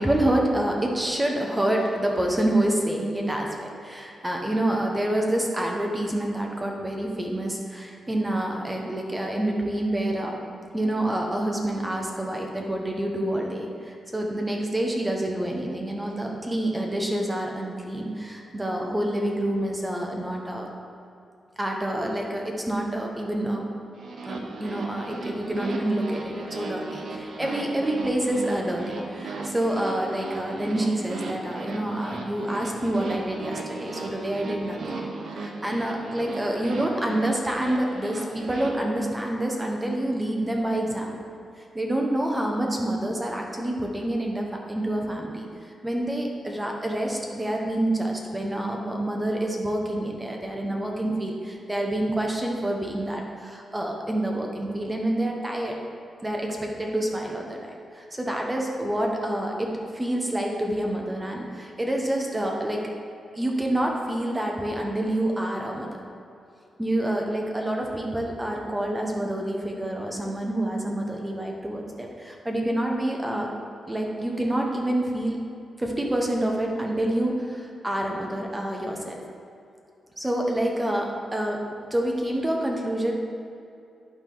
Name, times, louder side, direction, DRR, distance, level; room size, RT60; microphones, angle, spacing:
voice 1, 0.0-10.3 10.7-20.7 21.6-23.7 24.3-34.9 35.3-41.1 41.6-45.5 45.8-55.8 56.2-62.9 63.3-65.9 66.8-73.5 73.9-75.4 75.8-79.2 80.2-81.6 81.9-83.2, right 1 dB, 20° right, 0 dB, 1.0 m, -27 dB
sound 1, 24.0-38.7, right 3 dB, 70° right, 0.8 m, -36 dB
10.5 x 3.6 x 4.0 m, 2.6 s
cardioid pair, 55°, 0 cm